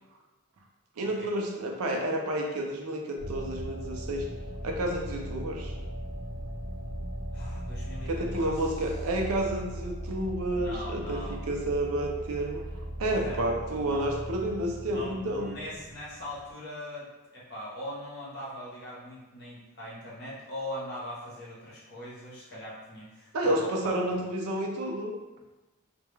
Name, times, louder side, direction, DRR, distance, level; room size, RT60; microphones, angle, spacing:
voice 1, 1.0-4.3 4.6-5.7 8.1-12.6 13.0-15.6 23.3-25.1, right 1 dB, 80° right, 1 dB, 0.4 m, -30 dB
sound 1, 3.2-16.5, equal, 55° right, 0.9 m, -38 dB
voice 2, 7.3-9.0 10.5-11.4 13.1-13.4 13.8-14.1 14.9-24.3, left 1 dB, 45° left, -6 dB, 0.8 m, -41 dB
2.2 x 2.1 x 3.1 m, 1.1 s
head